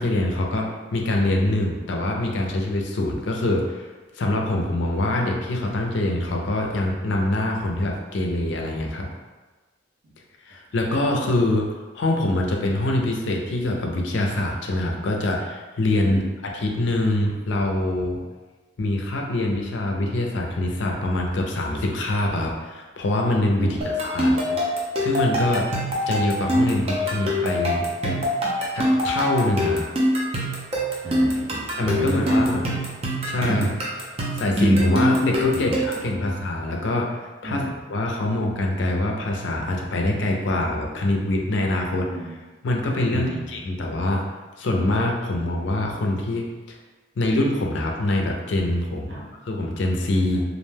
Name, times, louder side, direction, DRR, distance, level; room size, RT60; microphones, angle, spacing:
voice 1, 0.0-3.9 4.1-9.1 10.5-16.2 16.5-18.2 18.8-23.8 24.0-24.3 25.0-25.7 26.1-27.9 28.7-29.9 31.8-32.6 33.3-33.7 34.3-37.6 37.9-42.1 42.6-44.2 44.6-46.8 47.2-49.2 49.4-50.4, left 1 dB, 65° left, 0 dB, 0.4 m, -24 dB
voice 2, 23.6-23.9 24.3-24.6 28.1-28.2 29.6-30.1 31.0-32.8 33.5-33.7 35.5-36.3 37.4-37.7 38.2-38.3 41.9-42.4 43.1-43.6 49.1-49.3, right 1 dB, 70° right, -5 dB, 0.7 m, -32 dB
sound 1, 23.8-36.1, equal, 30° right, 0.5 m, -24 dB
2.4 x 2.1 x 3.2 m, 1.3 s
head